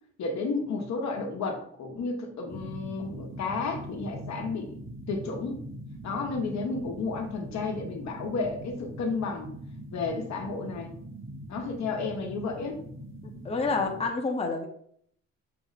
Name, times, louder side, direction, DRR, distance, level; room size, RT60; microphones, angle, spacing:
voice 1, 0.2-4.8 5.1-5.7 6.0-9.5 9.9-10.9 11.5-12.8, left 4 dB, 65° left, 2 dB, 1.0 m, -32 dB
sound 1, 2.5-14.1, right 1 dB, 45° right, 1.0 m, -42 dB
voice 2, 13.2-14.7, left 4 dB, 20° left, 1 dB, 0.8 m, -29 dB
5.8 x 2.0 x 4.0 m, 0.64 s
cardioid pair, 90°, 30 cm